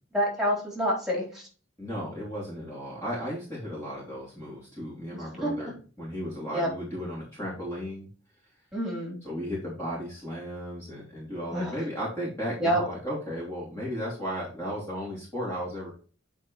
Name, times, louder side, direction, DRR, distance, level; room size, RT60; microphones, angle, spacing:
voice 1, 0.1-1.5 5.1-5.5 6.5-6.7 8.7-9.2 11.5-11.8 12.6-12.8, equal, ahead, -3 dB, 3.7 m, -28 dB
voice 2, 1.8-8.1 9.2-15.9, equal, 15° left, -6 dB, 3.0 m, -35 dB
9.3 x 5.4 x 3.2 m, 0.38 s
head